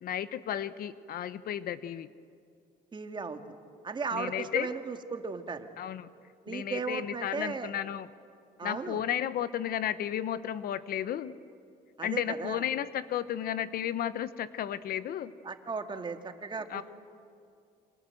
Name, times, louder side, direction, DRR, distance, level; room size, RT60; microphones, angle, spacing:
voice 1, 0.0-2.1 4.1-4.7 5.8-6.1 6.5-8.1 8.6-11.3 12.0-15.3 16.7-16.8, left 10 dB, 60° left, 14 dB, 1.0 m, -33 dB
voice 2, 2.9-3.4 3.8-5.7 6.4-7.7 8.6-9.0 12.0-12.6 15.4-16.8, right 4 dB, 25° right, 6 dB, 2.1 m, -36 dB
29.0 x 26.5 x 7.8 m, 2.4 s
cardioid pair, 110°, 17 cm